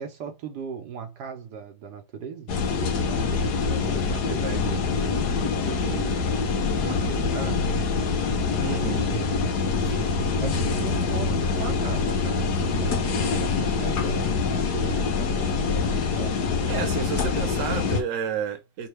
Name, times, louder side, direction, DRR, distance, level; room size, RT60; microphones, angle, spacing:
voice 1, 0.0-5.2 5.6-6.3 6.8-9.2 10.4-16.4, right 7 dB, 75° right, 1.3 m, -38 dB
sound 1, 2.5-18.0, left 4 dB, 70° left, 1.4 m, -25 dB
voice 2, 8.6-9.0 9.9-10.1 16.7-18.9, right 6 dB, 55° right, 1.2 m, -31 dB
5.4 x 2.4 x 3.3 m
omnidirectional pair, 1.8 m